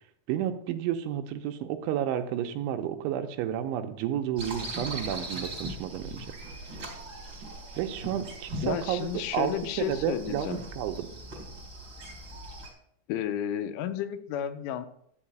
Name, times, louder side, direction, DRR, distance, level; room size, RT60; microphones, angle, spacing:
voice 1, 0.3-6.2 7.8-9.1 9.3-9.5 9.8-11.1, right 10 dB, 80° right, 7 dB, 3.0 m, -31 dB
sound 1, 4.4-12.7, right 1 dB, 30° right, 3.4 m, -40 dB
voice 2, 8.6-10.6 13.1-14.9, left 10 dB, 85° left, 10 dB, 3.1 m, -32 dB
13.0 x 4.7 x 8.7 m, 0.70 s
omnidirectional pair, 5.7 m